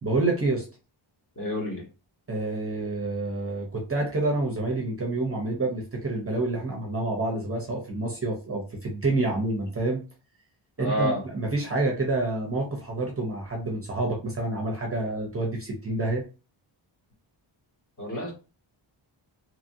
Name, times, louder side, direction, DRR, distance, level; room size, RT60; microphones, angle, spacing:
voice 1, 0.0-0.7 2.3-10.0 10.8-16.2, right 2 dB, 30° right, -1 dB, 0.6 m, -28 dB
voice 2, 1.4-1.8 10.8-11.2 18.0-18.3, equal, 40° left, -3 dB, 1.4 m, -28 dB
2.9 x 2.6 x 2.6 m, 0.34 s
wide cardioid pair, 170°, 49 cm